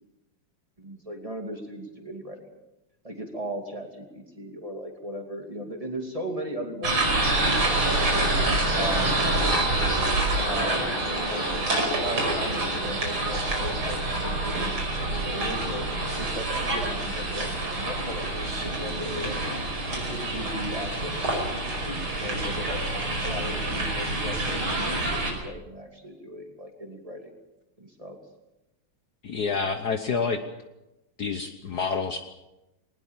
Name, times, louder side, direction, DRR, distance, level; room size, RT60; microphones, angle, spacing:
voice 1, 0.8-2.4 3.0-8.3 8.8-9.3 10.4-11.5 11.9-15.9 16.1-19.4 19.8-22.8 23.2-27.3 27.8-28.2, equal, 15° right, 3 dB, 2.7 m, -37 dB
sound 1, 6.8-25.3, right 2 dB, 85° right, 6.1 m, -27 dB
voice 2, 29.2-30.4 31.2-32.2, left 5 dB, 55° left, 7 dB, 1.4 m, -28 dB
20.5 x 19.5 x 7.3 m, 0.97 s
omnidirectional pair, 2.3 m